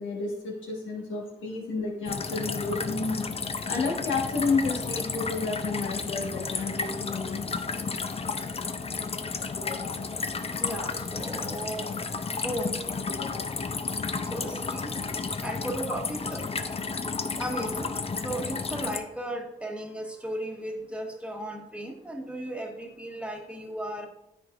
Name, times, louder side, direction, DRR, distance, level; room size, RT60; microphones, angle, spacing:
voice 1, 0.0-3.3 3.7-7.4 9.5-10.0 13.1-13.5, left 4 dB, 80° left, -1 dB, 1.4 m, -31 dB
sound 1, 2.1-19.0, left 4 dB, 30° left, 0.5 m, -32 dB
voice 2, 10.6-12.0 12.4-12.8 14.2-16.5 17.3-17.9 18.2-24.1, right 1 dB, 5° right, 2 dB, 1.2 m, -36 dB
9.4 x 4.0 x 2.5 m, 0.87 s
supercardioid pair, 50°, 20 cm